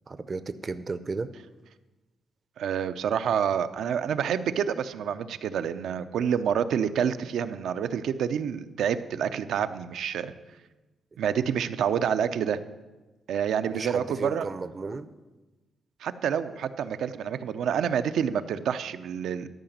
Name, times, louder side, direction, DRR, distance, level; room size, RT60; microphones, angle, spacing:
voice 1, 0.1-1.3 13.7-15.1, right 3 dB, 35° right, 13 dB, 0.6 m, -34 dB
voice 2, 2.6-10.3 11.2-12.6 13.3-14.5 16.0-19.5, right 8 dB, 80° right, 11 dB, 0.6 m, -28 dB
13.0 x 5.9 x 9.3 m, 1.2 s
cardioid pair, 115°, 0 cm